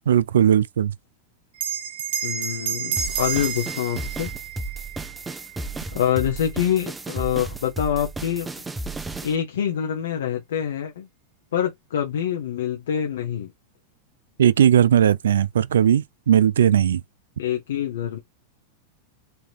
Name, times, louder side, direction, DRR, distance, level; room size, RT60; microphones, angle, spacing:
voice 1, 0.1-0.9 14.4-17.0, right 9 dB, 90° right, 0.3 m, -18 dB
Bell, 1.5-6.4, right 8 dB, 75° right, 0.7 m, -31 dB
voice 2, 2.2-4.3 5.9-8.5 9.2-11.1 11.5-13.5 17.4-18.2, left 9 dB, 80° left, 0.8 m, -25 dB
sound 1, 3.0-9.4, right 2 dB, 10° right, 0.4 m, -34 dB
3.4 x 2.7 x 2.4 m
hypercardioid pair, 120°, 0 cm